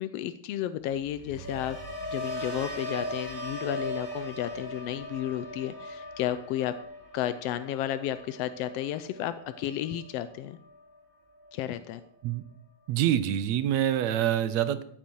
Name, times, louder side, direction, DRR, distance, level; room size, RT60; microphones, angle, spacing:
voice 1, 0.0-1.8 2.1-6.7 7.1-10.6 11.5-12.0, left 12 dB, 80° left, 12 dB, 1.4 m, -32 dB
sound 1, 1.0-11.0 11.4-11.8, left 1 dB, 30° right, 3.3 m, -39 dB
voice 2, 12.9-14.8, right 11 dB, 75° right, 12 dB, 1.9 m, -26 dB
14.0 x 10.0 x 4.5 m, 0.67 s
omnidirectional pair, 3.4 m